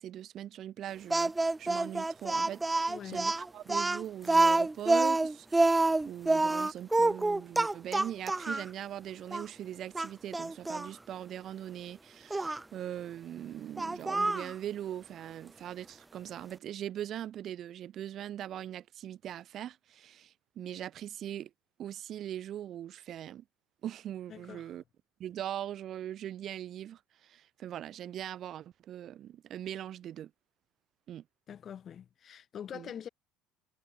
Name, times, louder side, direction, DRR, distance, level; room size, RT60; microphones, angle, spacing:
voice 1, 0.0-21.5 21.8-23.4 23.8-24.8 25.2-30.3 31.1-31.2 32.7-32.9, right 11 dB, 50° right, 1.8 m, -41 dB
Speech, 1.1-8.7 9.3-9.4 9.9-10.9 12.3-12.6 13.8-14.5, right 2 dB, 15° right, 0.8 m, -27 dB
voice 2, 2.9-3.2 24.3-24.8 31.5-33.1, left 9 dB, 40° left, 3.5 m, -44 dB
supercardioid pair, 90°, 0 cm